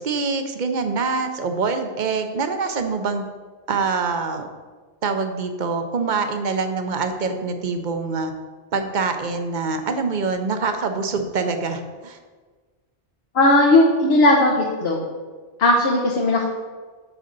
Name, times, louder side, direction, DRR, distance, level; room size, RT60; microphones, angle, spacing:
voice 1, 0.0-3.3 3.7-4.5 5.0-8.3 8.7-12.2, right 4 dB, 45° right, 6 dB, 0.9 m, -25 dB
voice 2, 13.3-15.0 15.6-16.5, left 2 dB, 65° left, -1 dB, 1.2 m, -17 dB
9.2 x 6.9 x 3.8 m, 1.4 s
omnidirectional pair, 1.1 m